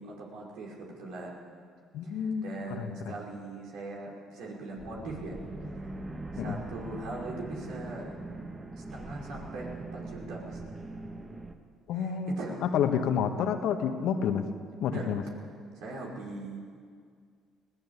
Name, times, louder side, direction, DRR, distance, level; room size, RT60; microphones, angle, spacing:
voice 1, 0.0-1.5 2.0-5.4 5.8-5.9 6.3-8.1 8.7-10.6 11.9-12.6 14.9-15.2 15.8-16.6, right 2 dB, 70° right, -2 dB, 5.3 m, -41 dB
voice 2, 1.9-2.4 2.8-3.1 6.4-6.6 11.9-12.3 12.6-14.5 14.8-15.2, left 7 dB, 65° left, 6 dB, 1.8 m, -29 dB
sound 1, 4.8-11.5, right 2 dB, 25° right, 2.3 m, -41 dB
20.0 x 18.0 x 8.6 m, 2.1 s
hypercardioid pair, 60°, 0 cm